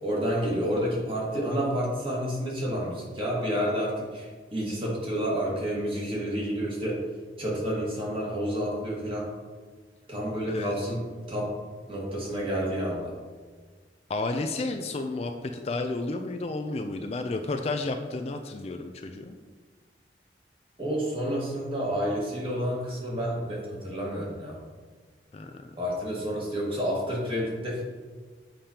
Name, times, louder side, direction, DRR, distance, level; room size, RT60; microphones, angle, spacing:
voice 1, 0.0-7.0 7.4-9.3 10.1-11.0 11.3-11.6 11.9-13.1 20.8-24.6 25.8-27.8, equal, 30° right, -4 dB, 1.6 m, -29 dB
voice 2, 14.1-19.4 25.3-25.7, left 2 dB, 35° left, 5 dB, 0.3 m, -32 dB
7.5 x 5.1 x 2.8 m, 1.5 s
head